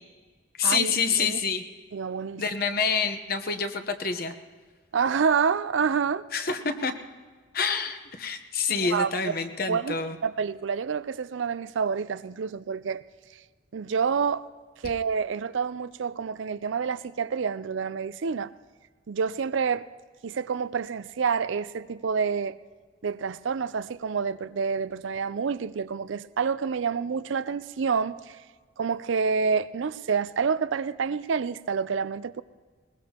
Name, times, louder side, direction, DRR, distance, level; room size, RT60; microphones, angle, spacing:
voice 1, 0.6-1.6 2.4-4.3 6.3-6.9 7.5-10.2, left 5 dB, 50° left, 1.0 m, -27 dB
voice 2, 1.9-2.4 4.9-6.2 8.7-9.1 9.7-10.0 10.2-13.0 13.7-14.5 14.8-18.5 19.1-19.8 20.2-22.6 23.0-28.4 28.8-32.4, right 6 dB, 75° right, 0.4 m, -28 dB
21.0 x 21.0 x 2.9 m
head